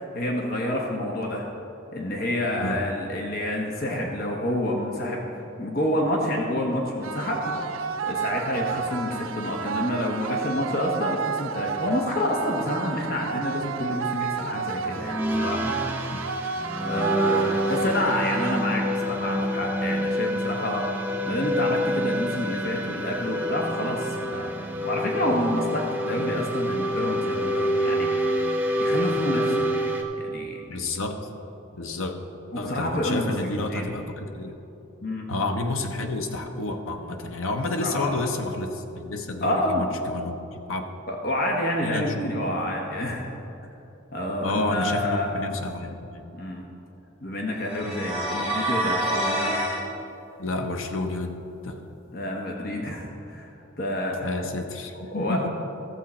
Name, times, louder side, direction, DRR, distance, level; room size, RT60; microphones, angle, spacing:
voice 1, 0.0-1.4 1.9-5.2 5.6-7.5 8.0-15.9 16.2-16.3 16.9-28.1 28.8-29.7 30.2-30.6 32.5-33.8 35.0-35.3 37.8-38.2 39.4-39.9 41.1-43.3 44.1-45.4 46.3-46.6 47.2-49.6 52.1-53.5 53.8-54.3 55.1-55.5, left 1 dB, 45° left, 0 dB, 1.1 m, -28 dB
sound 1, 7.0-19.0, right 6 dB, 85° right, 0.5 m, -31 dB
sound 2, 14.9-30.0, equal, 10° right, 0.7 m, -27 dB
voice 2, 30.7-31.2 31.7-32.2 32.6-34.5 35.3-40.9 41.8-42.2 44.4-46.2 50.4-51.4 51.6-51.8 54.2-55.5, left 2 dB, 85° left, 4 dB, 0.9 m, -30 dB
sound 3, 47.6-49.8, right 1 dB, 30° left, 2.2 m, -27 dB
13.5 x 7.5 x 4.3 m, 2.9 s
head